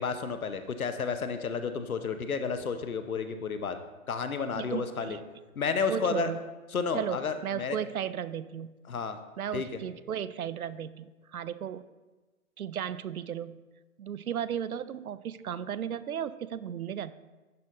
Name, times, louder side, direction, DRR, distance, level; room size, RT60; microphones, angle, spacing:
voice 1, 0.0-3.8 4.1-5.2 5.6-6.3 6.7-7.8 8.9-9.2 9.5-9.8, left 5 dB, 70° left, 9 dB, 0.9 m, -31 dB
voice 2, 4.6-5.2 5.9-6.5 6.9-8.7 9.4-11.8 12.6-13.6 14.0-17.1, right 9 dB, 75° right, 16 dB, 0.5 m, -35 dB
11.0 x 4.1 x 3.9 m, 1.2 s
hypercardioid pair, 165°, 44 cm